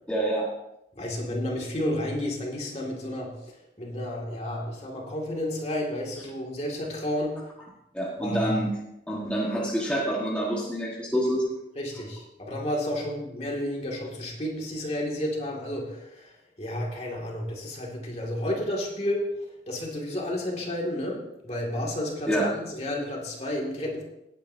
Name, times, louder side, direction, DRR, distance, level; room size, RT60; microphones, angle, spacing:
voice 1, 0.1-0.5 7.9-8.8 9.1-11.4 22.3-22.5, right 1 dB, 5° left, -5 dB, 1.6 m, -27 dB
voice 2, 1.0-7.4 8.2-8.6 11.8-19.4 19.7-24.0, left 1 dB, 35° left, -1 dB, 2.3 m, -31 dB
17.5 x 9.3 x 2.8 m, 0.83 s
head